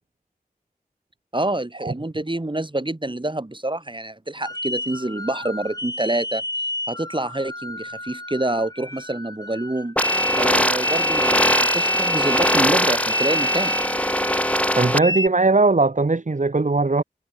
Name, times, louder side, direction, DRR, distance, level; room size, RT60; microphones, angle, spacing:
voice 1, 1.3-6.4 6.9-10.0 10.4-13.8, right 1 dB, 30° right, 5.2 m, -27 dB
sound 1, 4.4-15.3, left 1 dB, 25° left, 4.7 m, -28 dB
sound 2, 10.0-15.0, equal, 10° left, 3.0 m, -22 dB
voice 2, 14.8-17.0, right 3 dB, 55° right, 1.9 m, -19 dB
wide cardioid pair, 45°, 16 cm